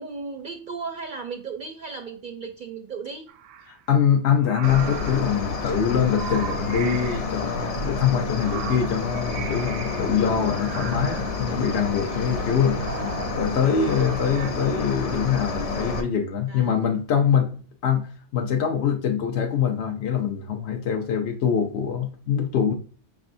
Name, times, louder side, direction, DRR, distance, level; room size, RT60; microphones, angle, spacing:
voice 1, 0.0-3.3 16.4-16.7, right 4 dB, 60° right, 0.5 m, -35 dB
sound 1, 3.3-3.7 4.4-7.2 8.1-10.1 10.4-11.4 11.9-14.5, right 8 dB, 90° right, 1.0 m, -38 dB
voice 2, 3.7-12.8 13.2-17.5 17.8-22.7, left 7 dB, 65° left, 0.8 m, -24 dB
Cricket, 4.6-16.0, left 3 dB, 50° left, 0.4 m, -29 dB
5.9 x 3.4 x 2.6 m
omnidirectional pair, 1.3 m